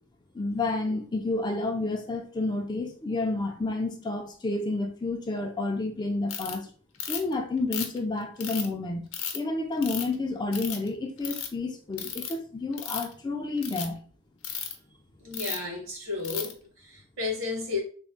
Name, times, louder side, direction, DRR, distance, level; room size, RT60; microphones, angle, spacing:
voice 1, 0.3-6.7 7.1-9.1 9.3-14.0, left 2 dB, 20° left, 0.4 m, -30 dB
Ratchet pawl, 6.3-6.5 7.0-7.3 7.7-8.7 9.1-9.4 9.8-10.1 10.5-10.9 11.2-11.5 12.0-12.3 12.7-13.1 13.6-13.9 14.4-14.7 15.3-15.7 16.2-16.5, left 8 dB, 70° left, 0.7 m, -34 dB
voice 2, 15.2-17.8, left 3 dB, 65° right, 1.2 m, -33 dB
3.4 x 2.1 x 3.8 m
head